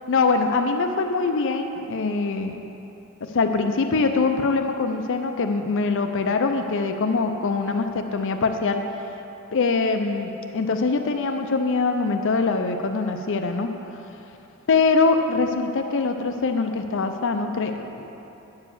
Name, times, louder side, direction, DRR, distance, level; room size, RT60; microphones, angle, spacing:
voice 1, 0.1-2.6 3.2-8.8 9.5-13.7 14.7-18.1, left 4 dB, 60° left, 6 dB, 0.5 m, -23 dB
9.5 x 4.8 x 7.2 m, 3.0 s
head